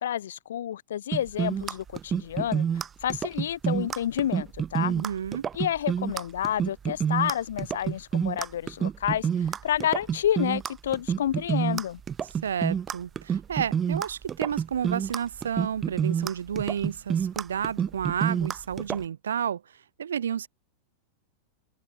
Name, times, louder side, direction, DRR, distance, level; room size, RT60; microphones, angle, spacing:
voice 1, 0.0-4.9 5.5-12.0, left 11 dB, 60° left, 0.8 m, -29 dB
sound 1, 1.1-19.0, right 8 dB, 20° right, 0.3 m, -28 dB
voice 2, 4.8-5.4 12.4-19.6 20.0-20.5, right 8 dB, 65° right, 1.0 m, -31 dB
open air
figure-of-eight pair, 90°, 0 cm